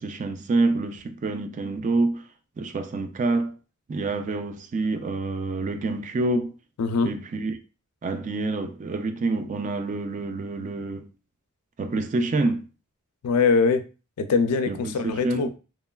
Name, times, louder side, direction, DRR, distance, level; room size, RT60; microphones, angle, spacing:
voice 1, 0.0-2.2 2.6-3.5 3.9-6.5 7.0-7.6 8.0-11.1 11.8-12.7 14.7-15.5, right 2 dB, 35° right, 0.3 m, -27 dB
voice 2, 6.8-7.1 13.2-13.8 14.2-15.5, left 4 dB, 85° left, 0.4 m, -22 dB
3.0 x 2.2 x 2.2 m
head